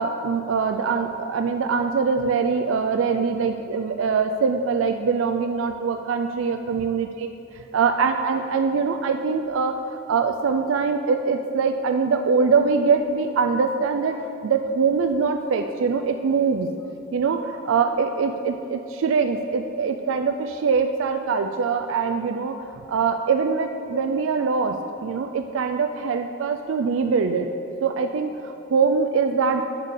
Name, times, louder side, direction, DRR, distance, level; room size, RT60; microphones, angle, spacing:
voice 1, 0.0-7.3 7.5-16.7 17.1-27.5 27.8-29.6, right 5 dB, 85° right, 6 dB, 0.4 m, -23 dB
10.5 x 8.0 x 3.6 m, 2.9 s
head